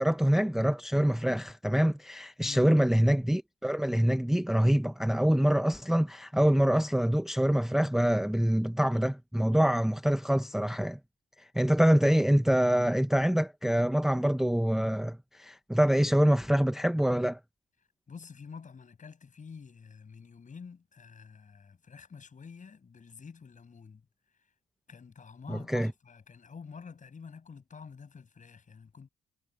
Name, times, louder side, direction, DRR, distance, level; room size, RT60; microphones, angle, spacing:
voice 1, 0.0-11.0 11.4-17.4 25.7-25.9, equal, ahead, 0.7 m, -25 dB
voice 2, 2.4-2.8 18.1-24.1 24.9-29.1, left 5 dB, 40° left, 6.6 m, -48 dB
cardioid pair, 90°, 20 cm